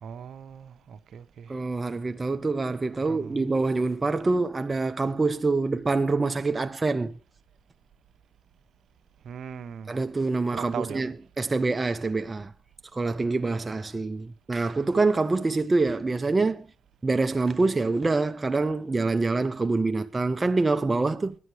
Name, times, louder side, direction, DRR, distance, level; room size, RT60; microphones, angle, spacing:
voice 1, 0.0-1.6 3.0-3.5 9.2-10.0 10.5-11.0, right 7 dB, 60° right, 0.8 m, -39 dB
voice 2, 1.5-7.2 9.9-11.1 11.4-12.5 12.9-16.7 17.0-21.4, right 3 dB, 25° right, 0.5 m, -25 dB
9.9 x 9.7 x 4.8 m
cardioid pair, 90°, 0 cm